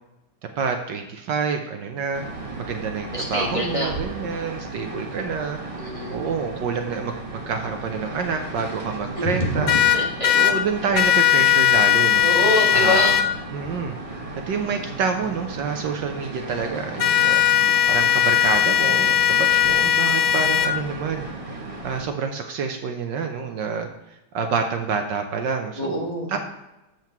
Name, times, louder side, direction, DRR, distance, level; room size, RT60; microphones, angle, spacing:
voice 1, 0.6-2.2 2.6-5.6 6.1-9.7 10.3-12.3 12.7-13.2 13.5-13.9 14.5-21.3 21.8-23.9 24.3-26.0 26.3-26.4, right 5 dB, 70° right, 5 dB, 1.3 m, -27 dB
sound 1, 2.1-22.0, right 2 dB, 25° right, 0.8 m, -35 dB
voice 2, 3.1-3.9 5.8-6.2 9.6-10.3 12.2-13.1 25.8-26.3, equal, 15° left, -4 dB, 1.9 m, -25 dB
sound 2, 9.7-10.5 11.0-13.2 17.0-20.7, left 10 dB, 65° left, 1.3 m, -18 dB
7.5 x 5.9 x 5.8 m, 0.94 s
omnidirectional pair, 2.1 m